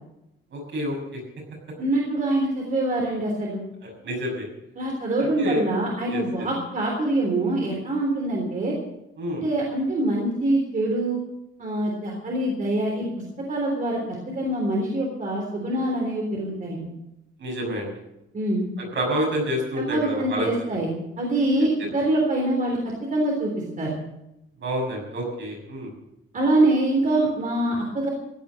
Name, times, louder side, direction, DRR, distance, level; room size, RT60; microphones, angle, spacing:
voice 1, 0.5-1.2 3.8-4.5 5.2-5.6 6.1-6.5 9.2-9.4 17.4-17.9 18.8-20.8 21.8-21.9 24.6-25.9, equal, 60° right, 0 dB, 6.6 m, -28 dB
voice 2, 1.8-3.6 4.8-8.8 9.4-11.2 11.6-13.1 13.5-14.0 14.3-16.9 18.3-18.6 19.8-20.9 21.2-22.8 23.1-23.5 23.8-23.9 26.3-28.1, right 1 dB, 40° right, -1 dB, 3.6 m, -24 dB
16.0 x 9.6 x 7.6 m, 0.87 s
wide cardioid pair, 145°, 21 cm